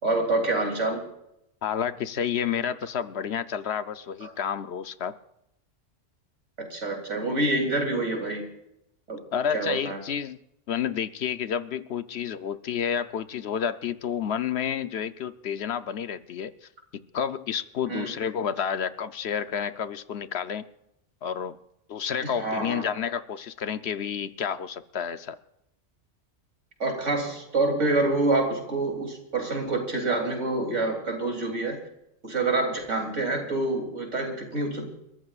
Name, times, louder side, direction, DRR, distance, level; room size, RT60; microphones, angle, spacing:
voice 1, 0.0-1.0 4.2-4.3 6.6-8.4 9.1-9.2 9.5-10.0 17.9-18.1 22.2-22.8 26.8-31.8 32.2-35.0, right 2 dB, 80° right, 2 dB, 3.4 m, -27 dB
voice 2, 1.6-5.2 9.3-10.4 10.7-16.7 17.1-20.6 21.2-21.6 21.9-25.4, left 8 dB, 65° left, 12 dB, 0.9 m, -30 dB
30.0 x 14.0 x 2.4 m, 0.82 s
omnidirectional pair, 1.2 m